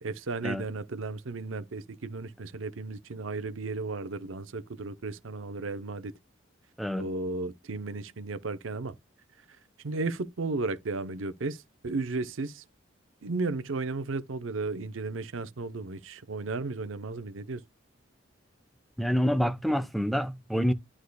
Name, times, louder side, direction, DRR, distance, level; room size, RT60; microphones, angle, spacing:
voice 1, 0.0-6.1 7.0-8.9 9.8-12.6 13.2-17.6, right 3 dB, 85° right, 0.7 m, -34 dB
voice 2, 19.0-20.7, equal, ahead, 0.5 m, -27 dB
11.5 x 4.8 x 2.2 m
head